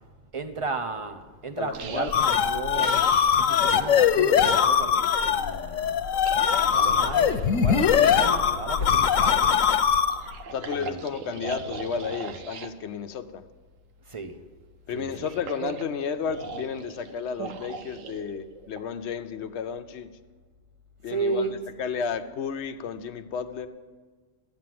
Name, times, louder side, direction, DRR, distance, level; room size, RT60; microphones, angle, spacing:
voice 1, 0.3-3.0 3.4-6.0 6.7-9.6 10.7-11.1 14.1-14.4 14.9-15.3 21.1-21.6, right 4 dB, 30° right, 0.8 m, -34 dB
voice 2, 1.6-2.2 10.5-13.4 14.9-20.1 21.0-21.4 21.8-23.7, left 6 dB, 65° left, 0.9 m, -32 dB
sound 1, 1.7-3.4 6.1-7.5 10.1-12.7 15.0-18.9, right 5 dB, 85° right, 1.2 m, -39 dB
sound 2, 1.8-10.3, left 7 dB, 85° left, 1.1 m, -22 dB
13.0 x 9.0 x 7.6 m
omnidirectional pair, 1.3 m